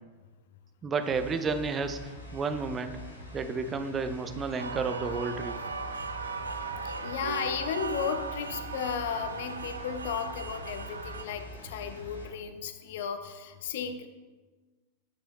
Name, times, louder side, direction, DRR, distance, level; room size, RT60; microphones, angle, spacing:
voice 1, 0.8-3.0 3.3-5.6, right 4 dB, 20° right, 8 dB, 0.6 m, -31 dB
sound 1, 1.0-12.3, equal, 80° left, 2.0 m, -45 dB
sound 2, 4.6-11.2, right 4 dB, 75° right, 0.4 m, -37 dB
voice 2, 6.8-14.1, left 7 dB, 55° left, 9 dB, 0.6 m, -35 dB
8.5 x 6.3 x 3.0 m, 1.3 s
figure-of-eight pair, 90°, 0 cm